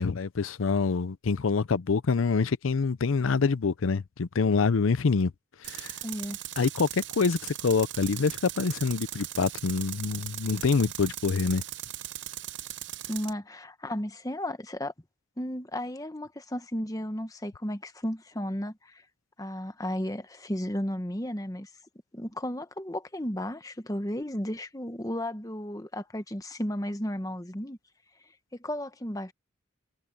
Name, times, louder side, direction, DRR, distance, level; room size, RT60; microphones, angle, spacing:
voice 1, 0.0-5.3 5.6-6.0 6.6-11.6, left 4 dB, 90° left, 0.6 m, -26 dB
Tools, 5.6-13.3, right 13 dB, 65° right, 0.8 m, -39 dB
voice 2, 6.0-6.4 13.1-14.9 15.4-19.0 19.4-21.7 22.1-27.8 28.5-29.3, left 1 dB, 15° left, 1.2 m, -34 dB
head